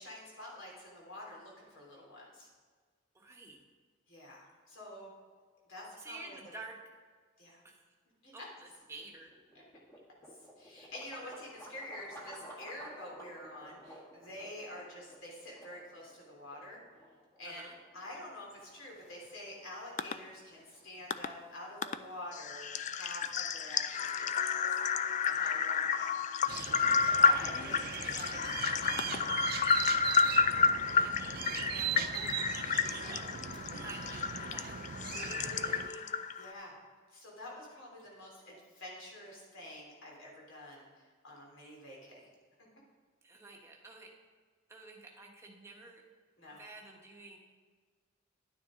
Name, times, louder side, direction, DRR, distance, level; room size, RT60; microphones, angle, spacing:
voice 1, 0.0-2.5 4.1-5.1 5.7-6.5 7.4-7.6 8.2-8.5 10.6-16.8 17.4-17.6 17.9-24.6 25.2-26.2 27.0-29.3 31.7-33.3 33.5-33.7 36.4-36.7 37.1-42.3 46.4-46.6, left 1 dB, 70° left, -3 dB, 3.3 m, -48 dB
voice 2, 3.1-3.6 6.0-6.8 7.6-7.9 8.3-9.3 17.4-17.7 27.5-28.0 30.0-31.4 33.8-36.1 43.2-44.1 44.7-46.0 46.6-47.4, right 2 dB, 15° right, 0 dB, 1.2 m, -51 dB
sound 1, 8.6-22.7, equal, 15° left, 1.5 m, -54 dB
sound 2, 20.0-20.1 21.1-21.3 21.8-22.0 22.3-36.5, left 6 dB, 35° left, 0.3 m, -31 dB
sound 3, 26.5-35.9, right 8 dB, 45° right, 0.4 m, -40 dB
11.0 x 9.3 x 3.7 m, 1.5 s
head